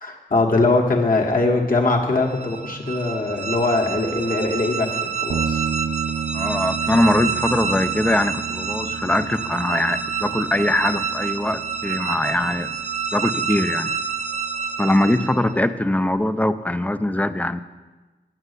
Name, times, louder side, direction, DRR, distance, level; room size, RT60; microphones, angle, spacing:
voice 1, 0.0-4.9 5.2-5.6, left 2 dB, 50° left, -1 dB, 1.4 m, -21 dB
sound 1, 2.2-15.6, right 6 dB, 40° right, 0.6 m, -28 dB
sound 2, 5.3-14.8, right 7 dB, 75° right, 0.7 m, -33 dB
voice 2, 6.3-12.8 13.1-14.0 14.8-17.6, left 1 dB, 10° left, 12 dB, 0.4 m, -22 dB
9.8 x 5.5 x 8.2 m, 1.2 s
wide cardioid pair, 100°, 18 cm